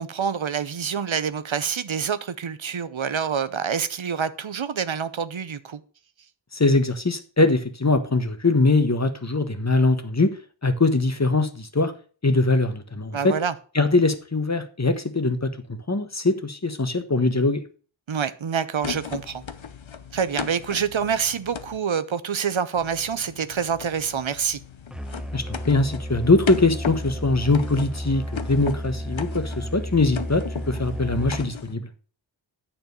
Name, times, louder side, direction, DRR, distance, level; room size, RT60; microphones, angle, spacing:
voice 1, 0.0-5.8 13.1-13.5 18.1-19.4 20.1-24.6, right 7 dB, 85° right, 0.8 m, -27 dB
voice 2, 6.5-10.3 10.6-11.9 12.2-13.3 13.7-15.5 15.9-17.6 25.3-31.8, left 3 dB, 35° left, 1.2 m, -22 dB
sound 1, 18.8-21.8 22.8-31.8, left 7 dB, 80° left, 0.8 m, -37 dB
Musical instrument, 24.9-31.7, equal, ahead, 0.5 m, -33 dB
9.0 x 4.4 x 6.9 m
wide cardioid pair, 40°, 46 cm